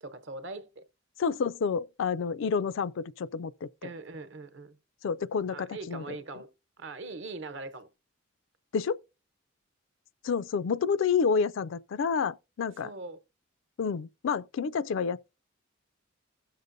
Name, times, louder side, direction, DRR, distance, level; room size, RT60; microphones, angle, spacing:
voice 1, 0.0-0.8 3.8-4.7 5.5-6.5 6.8-7.9 12.8-13.2, right 3 dB, 60° right, 0.9 m, -41 dB
voice 2, 1.2-3.9 5.0-6.2 8.7-9.0 10.2-12.9 13.8-15.3, left 6 dB, 65° left, 0.4 m, -29 dB
16.0 x 6.6 x 2.6 m
head